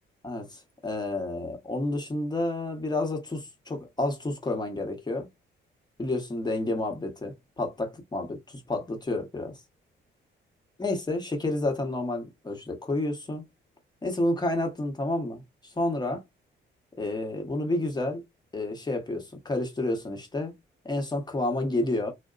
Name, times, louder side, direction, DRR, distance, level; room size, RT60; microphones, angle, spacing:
voice 1, 0.2-5.3 6.0-9.6 10.8-13.4 14.0-16.2 17.0-18.2 18.5-20.5 20.8-22.1, left 2 dB, 20° left, 1.0 m, -30 dB
2.7 x 2.1 x 2.3 m
cardioid pair, 90°, 20 cm